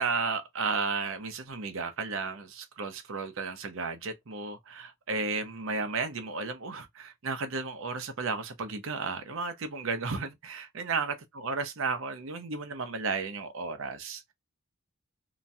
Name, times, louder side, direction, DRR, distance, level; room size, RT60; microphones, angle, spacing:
voice 1, 0.0-14.3, right 4 dB, 70° right, 0.7 m, -33 dB
2.9 x 2.2 x 2.6 m
head